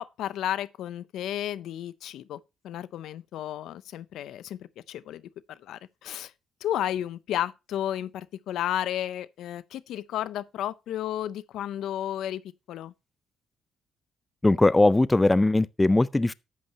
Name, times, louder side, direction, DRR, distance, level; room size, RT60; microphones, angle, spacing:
voice 1, 0.0-4.6 4.9-5.2 5.5-6.3 6.6-12.4 12.7-12.9, left 11 dB, 80° left, 0.6 m, -32 dB
voice 2, 14.4-16.3, left 2 dB, 15° left, 0.4 m, -20 dB
11.0 x 8.6 x 2.8 m
cardioid pair, 90°, 0 cm